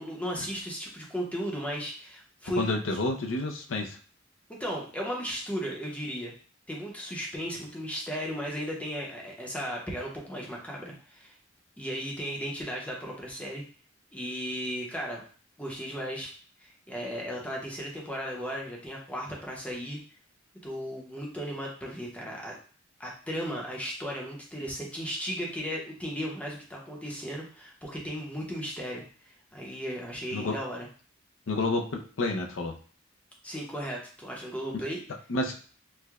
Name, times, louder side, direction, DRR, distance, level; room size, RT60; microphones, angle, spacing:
voice 1, 0.0-2.7 4.5-6.3 6.7-11.3 11.8-13.6 14.1-15.2 15.6-16.3 16.6-20.0 20.6-22.6 23.0-30.9 33.4-35.0, equal, 5° left, -2 dB, 0.7 m, -35 dB
voice 2, 2.6-4.0 30.3-30.5 31.5-32.7 35.3-35.5, left 2 dB, 70° left, 3 dB, 0.5 m, -29 dB
4.5 x 2.1 x 2.4 m, 0.42 s
head